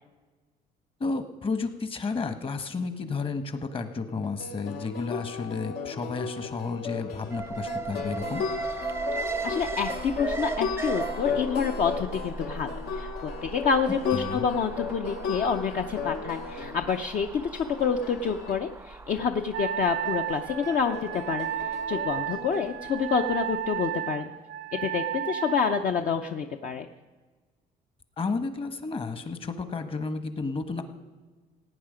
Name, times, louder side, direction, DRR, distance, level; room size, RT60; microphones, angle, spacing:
voice 1, 1.0-8.4 14.1-14.5 28.2-30.8, left 4 dB, 35° left, 9 dB, 1.2 m, -32 dB
sound 1, 4.1-18.6 20.0-23.1, left 6 dB, 70° left, 1.2 m, -36 dB
Alarm, 7.3-23.4 23.7-23.8, right 3 dB, 15° right, 0.5 m, -37 dB
voice 2, 9.2-24.3 24.7-26.9, left 6 dB, 50° left, 5 dB, 0.7 m, -28 dB
Wind instrument woodwind instrument, 19.5-25.9, right 10 dB, 65° right, 0.5 m, -33 dB
17.5 x 8.9 x 5.1 m, 1.3 s
cardioid pair, 110°, 17 cm